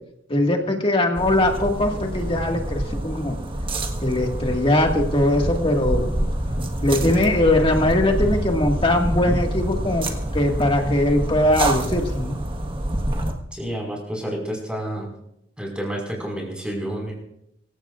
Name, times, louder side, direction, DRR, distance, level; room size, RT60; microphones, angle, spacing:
voice 1, 0.3-3.4 4.0-6.1 6.8-10.1 10.3-12.3, left 1 dB, 30° left, 2 dB, 1.9 m, -21 dB
sound 1, 1.2-13.3, right 1 dB, 25° right, 1.4 m, -26 dB
voice 2, 13.5-15.1 15.6-17.1, right 1 dB, 5° right, -1 dB, 5.2 m, -29 dB
25.5 x 16.0 x 2.5 m, 0.79 s
head